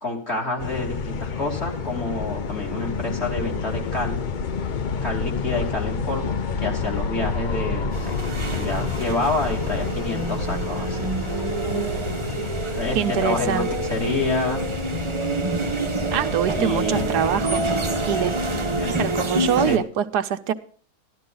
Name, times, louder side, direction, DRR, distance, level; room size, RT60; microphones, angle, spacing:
voice 1, 0.0-4.2 5.0-8.1 8.5-11.1 12.7-14.7 16.5-17.1 18.8-18.9 19.7-19.8, left 2 dB, 40° left, 0 dB, 3.0 m, -28 dB
sound 1, 0.6-19.2, left 5 dB, 70° left, 0.4 m, -29 dB
sound 2, 7.9-19.8, right 2 dB, 25° right, 0.7 m, -27 dB
voice 2, 12.9-13.7 16.1-17.7 18.1-18.4 18.9-20.5, right 9 dB, 80° right, 9 dB, 1.3 m, -24 dB
13.0 x 12.0 x 3.9 m, 0.43 s
omnidirectional pair, 1.7 m